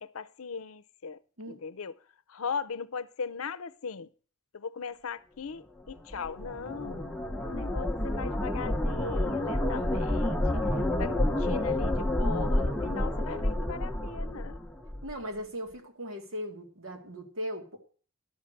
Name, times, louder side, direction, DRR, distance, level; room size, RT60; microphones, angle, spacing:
voice 1, 0.0-1.2 1.5-1.9 2.3-4.1 4.5-10.6 11.0-14.6, left 5 dB, 90° left, 0.6 m, -38 dB
sound 1, 5.9-15.1, left 1 dB, 5° left, 0.9 m, -29 dB
voice 2, 15.0-17.8, equal, 75° right, 2.2 m, -38 dB
12.5 x 6.6 x 7.7 m
head